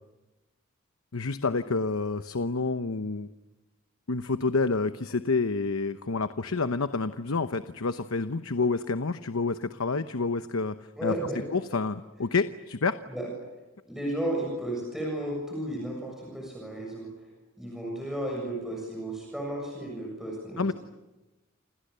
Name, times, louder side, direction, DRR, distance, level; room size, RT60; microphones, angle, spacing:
voice 1, 1.1-3.3 4.1-10.7 11.0-11.1 11.5-13.0 20.6-20.7, left 4 dB, 90° left, 10 dB, 0.9 m, -28 dB
voice 2, 11.0-11.5 13.1-13.3 13.9-17.1 17.6-20.7, right 1 dB, ahead, -1 dB, 7.1 m, -33 dB
29.5 x 27.0 x 6.8 m, 1.1 s
head